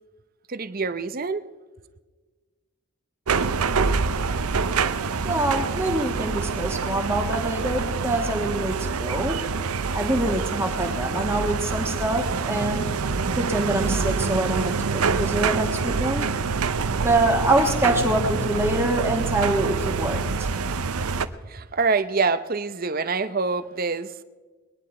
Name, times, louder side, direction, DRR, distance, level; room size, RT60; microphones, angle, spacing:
voice 1, 0.5-1.5 21.4-24.1, right 4 dB, 40° right, 0.6 m, -25 dB
sound 1, 3.3-21.3, right 4 dB, 90° right, 0.7 m, -26 dB
voice 2, 5.2-9.4 9.9-12.8 13.4-16.3 17.0-20.5, right 1 dB, 10° right, 1.3 m, -25 dB
21.5 x 10.5 x 4.3 m
head